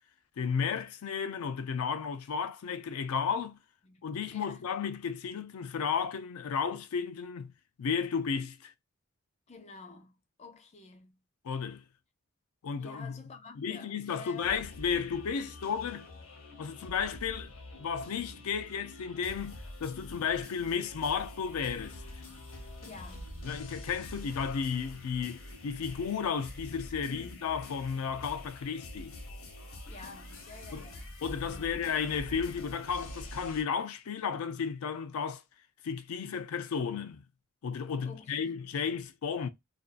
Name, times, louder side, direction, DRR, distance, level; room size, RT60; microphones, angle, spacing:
voice 1, 0.4-3.6 4.0-7.5 7.8-8.7 11.4-11.8 12.6-13.2 13.6-16.1 16.6-17.5 17.8-22.0 23.4-29.2 30.7-30.9 31.2-35.4 35.8-37.3 37.6-39.5, left 6 dB, 90° left, 0.4 m, -33 dB
voice 2, 4.3-4.6 9.5-11.2 12.8-14.8 22.8-23.3 27.1-27.5 29.9-31.1 31.4-31.8 38.0-38.7, left 4 dB, 30° left, 0.4 m, -50 dB
sound 1, 14.4-33.6, left 1 dB, 70° left, 0.9 m, -46 dB
2.5 x 2.2 x 2.4 m
head